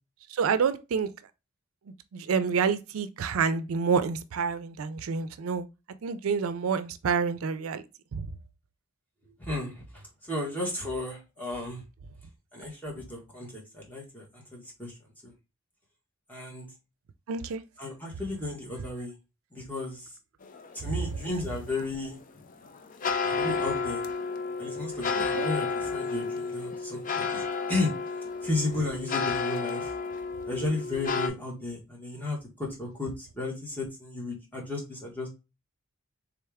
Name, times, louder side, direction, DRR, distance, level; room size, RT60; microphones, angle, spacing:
voice 1, 0.3-1.1 2.1-5.7 6.0-7.8 8.1-8.2 17.3-17.6 25.2-25.5, right 5 dB, 85° right, 0.4 m, -28 dB
voice 2, 9.4-11.8 12.5-14.9 15.2-15.3 16.3-16.7 17.8-19.1 19.5-20.1 20.7-22.2 23.2-24.0 24.6-27.9 28.4-29.9 30.5-35.3, left 2 dB, 10° left, 1.6 m, -34 dB
sound 1, 20.4-31.3, left 5 dB, 40° left, 0.5 m, -32 dB
3.6 x 3.3 x 3.5 m
head